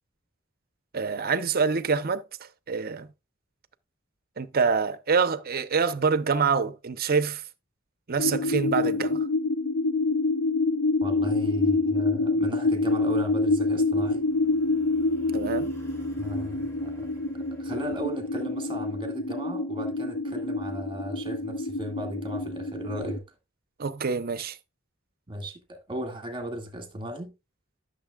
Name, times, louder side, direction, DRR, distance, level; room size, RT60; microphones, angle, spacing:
voice 1, 0.9-2.3 2.7-3.1 4.4-7.4 8.1-9.3 15.3-15.7 23.8-24.6, right 5 dB, 50° right, 0.7 m, -26 dB
sound 1, 8.2-23.2, left 3 dB, 55° left, 0.7 m, -27 dB
voice 2, 11.0-14.2 16.2-17.1 17.3-23.2 25.3-27.3, right 1 dB, 25° right, 1.8 m, -36 dB
sound 2, 13.3-19.0, equal, 15° left, 2.2 m, -50 dB
12.5 x 6.6 x 2.3 m
head